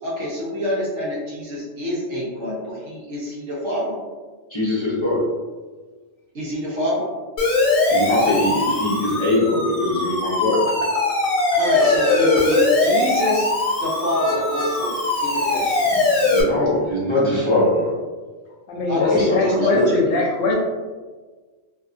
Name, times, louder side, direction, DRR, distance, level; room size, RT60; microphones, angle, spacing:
voice 1, 0.0-4.0 6.3-7.1 11.6-13.5 13.8-15.8 18.9-20.0, left 1 dB, 60° right, -5 dB, 1.1 m, -26 dB
voice 2, 4.5-5.2 7.9-10.6 15.8-17.9 19.0-19.9, left 2 dB, 25° left, -9 dB, 0.7 m, -21 dB
Siren, 7.4-16.4, left 2 dB, 60° left, 0.3 m, -20 dB
voice 3, 18.7-20.6, left 3 dB, 75° left, -1 dB, 1.0 m, -22 dB
2.7 x 2.4 x 2.4 m, 1.4 s
omnidirectional pair, 1.4 m